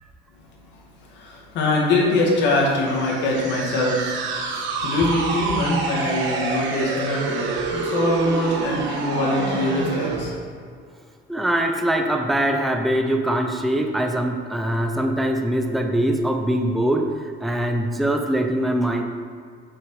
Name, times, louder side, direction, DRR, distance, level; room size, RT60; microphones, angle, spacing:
voice 1, 1.1-4.2 4.5-10.3, left 2 dB, 65° left, -3 dB, 1.9 m, -23 dB
sound 1, 2.9-10.3, right 4 dB, 75° right, 1.1 m, -27 dB
voice 2, 11.3-19.0, right 1 dB, ahead, 3 dB, 0.4 m, -22 dB
6.2 x 6.2 x 4.8 m, 2.1 s
cardioid pair, 160°, 20 cm